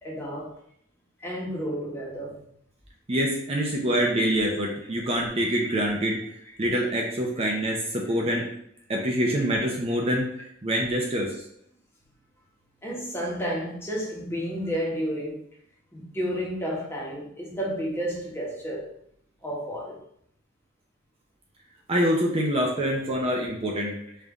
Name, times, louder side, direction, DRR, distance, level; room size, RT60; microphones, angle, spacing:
voice 1, 0.0-0.6 1.2-2.4 6.4-6.5 7.4-7.5 8.1-8.2 11.1-11.2 12.8-15.4 15.9-18.9 19.4-20.0, equal, 15° left, -4 dB, 1.1 m, -31 dB
voice 2, 3.1-6.2 6.6-8.5 8.9-10.3 10.6-11.3 21.9-23.9, equal, 30° right, -1 dB, 0.6 m, -25 dB
5.3 x 2.7 x 3.5 m, 0.69 s
head